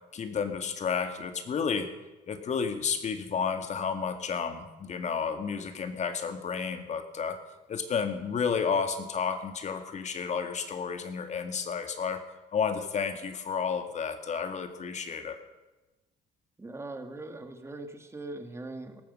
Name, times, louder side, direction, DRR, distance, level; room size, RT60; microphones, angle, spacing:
voice 1, 0.1-1.9 2.3-7.4 7.7-12.2 12.5-15.4, left 6 dB, 45° left, 8 dB, 2.0 m, -31 dB
voice 2, 16.6-19.0, right 2 dB, 15° right, 6 dB, 2.0 m, -41 dB
17.5 x 14.0 x 5.5 m, 1.1 s
cardioid pair, 110°, 17 cm